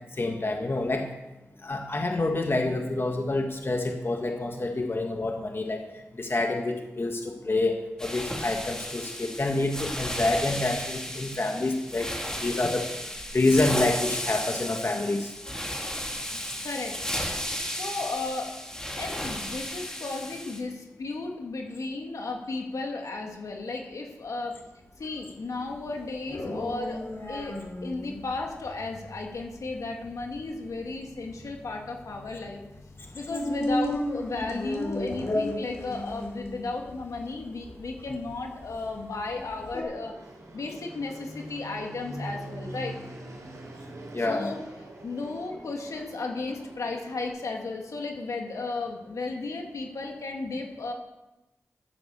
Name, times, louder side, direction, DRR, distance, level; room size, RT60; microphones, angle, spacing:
voice 1, 0.2-1.1 1.6-5.8 6.2-12.1 12.4-12.9 13.3-15.3 44.1-44.5, left 2 dB, 45° left, 3 dB, 1.6 m, -27 dB
sound 1, 8.0-20.6, equal, 10° left, 3.1 m, -34 dB
voice 2, 16.6-17.0 17.7-18.5 19.0-24.5 25.0-27.0 27.3-27.5 27.8-32.6 33.1-40.1 40.5-43.0 44.2-44.6 45.0-50.9, left 3 dB, 80° left, 1 dB, 2.3 m, -34 dB
sound 2, 25.5-39.8, left 1 dB, 60° left, 4.2 m, -35 dB
Fixed-wing aircraft airplane, 37.1-47.3, right 1 dB, 75° right, 3.5 m, -44 dB
13.5 x 7.8 x 7.2 m, 1.0 s
cardioid pair, 55°, 5 cm